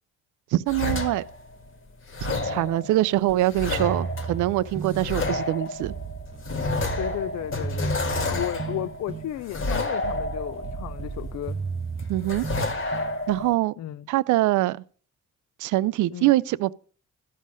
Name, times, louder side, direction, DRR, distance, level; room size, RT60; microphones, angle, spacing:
voice 1, 0.5-1.2 2.2-5.9 12.1-12.5 13.3-13.7 14.1-14.8 15.6-16.7, right 16 dB, 80° right, 0.5 m, -24 dB
sound 1, 0.7-1.7 2.1-11.6 12.0-13.5, left 2 dB, 45° left, 1.6 m, -30 dB
voice 2, 2.4-2.9 7.0-11.6 13.8-14.1 16.1-16.3, left 13 dB, 65° left, 0.5 m, -34 dB
sound 2, 3.8-13.6, right 5 dB, 20° right, 0.4 m, -35 dB
13.0 x 5.6 x 6.3 m
cardioid pair, 90°, 30 cm